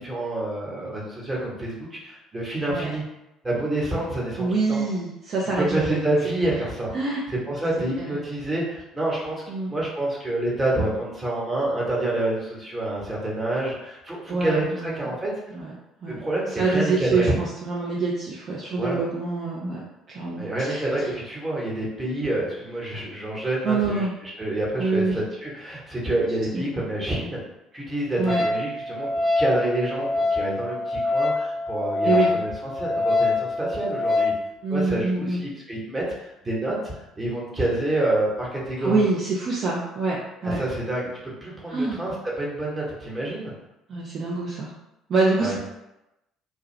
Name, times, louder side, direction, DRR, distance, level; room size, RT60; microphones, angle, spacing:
voice 1, 0.0-3.0 3.4-4.8 5.6-6.9 7.3-9.4 9.7-15.3 16.1-17.3 18.8-19.0 20.4-27.4 27.7-34.3 34.7-39.0 40.4-43.5 45.4-45.6, right 1 dB, 20° right, -5 dB, 1.1 m, -28 dB
voice 2, 4.4-6.0 6.9-7.2 8.0-8.1 9.5-9.7 14.3-15.1 15.5-15.7 16.0-16.2 16.6-19.8 20.1-20.4 20.7-20.8 23.6-24.1 24.8-25.2 26.5-26.6 28.2-28.4 32.0-32.4 34.6-35.4 38.8-40.6 41.7-42.0 43.9-44.7 45.1-45.6, right 3 dB, 45° right, -5 dB, 0.5 m, -25 dB
Wind instrument woodwind instrument, 28.3-34.4, left 3 dB, 25° left, 0.4 m, -25 dB
2.6 x 2.2 x 3.2 m, 0.93 s
figure-of-eight pair, 55°, 0 cm